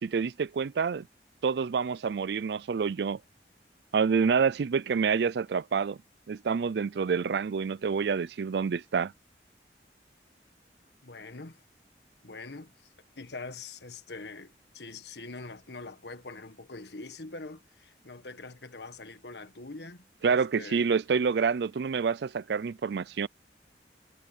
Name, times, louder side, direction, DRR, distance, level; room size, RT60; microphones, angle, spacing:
voice 1, 0.0-1.1 1.4-3.2 3.9-6.0 6.3-9.1 20.2-23.3, right 5 dB, 75° right, 0.4 m, -27 dB
voice 2, 11.0-11.6 12.2-12.7 13.1-20.9, left 3 dB, 80° left, 1.6 m, -44 dB
head